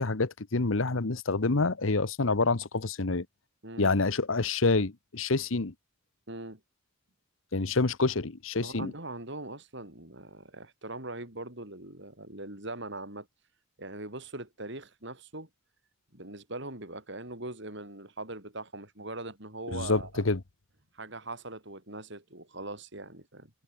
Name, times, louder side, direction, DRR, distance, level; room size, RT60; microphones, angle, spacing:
voice 1, 0.0-3.3 3.8-5.7 7.5-8.9 19.7-20.4, left 3 dB, 70° left, 1.1 m, -27 dB
voice 2, 6.3-6.6 8.6-13.3 13.8-15.5 16.1-20.2 20.9-23.5, right 2 dB, 55° right, 5.1 m, -41 dB
head